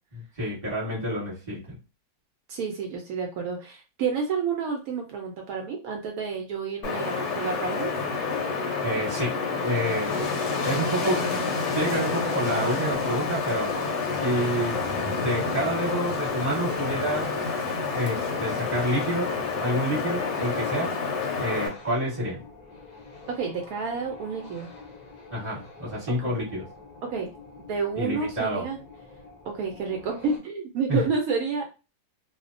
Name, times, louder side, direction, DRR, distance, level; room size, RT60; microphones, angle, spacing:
voice 1, 0.4-1.7 8.8-10.3 10.6-11.3 11.7-13.8 14.1-14.8 15.2-17.3 17.8-20.9 21.4-22.4 25.3-26.6 27.9-28.6 30.9-31.0, right 1 dB, 25° right, -8 dB, 1.1 m, -28 dB
voice 2, 2.5-7.9 23.3-24.7 26.1-26.3 27.0-27.3 27.7-28.8 29.4-31.6, right 5 dB, 70° right, 1 dB, 1.0 m, -30 dB
Wind, 6.8-21.7, left 4 dB, 65° left, 0.7 m, -28 dB
sound 1, 12.7-30.4, left 3 dB, 85° left, 0.3 m, -47 dB
2.6 x 2.1 x 2.5 m, 0.30 s
omnidirectional pair, 1.7 m